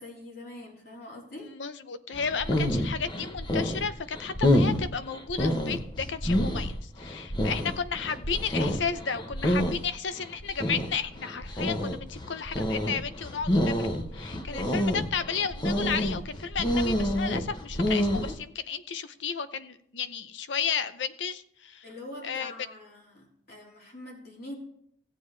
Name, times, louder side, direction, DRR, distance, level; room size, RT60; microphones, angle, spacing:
voice 1, 0.0-1.5 21.8-24.5, left 1 dB, 55° left, -4 dB, 3.6 m, -44 dB
voice 2, 1.4-13.9 14.1-21.8 22.2-22.5, left 6 dB, 80° left, 12 dB, 0.7 m, -33 dB
sound 1, 2.1-18.4, left 1 dB, 25° left, 0.9 m, -28 dB
16.5 x 7.8 x 3.3 m, 0.68 s
head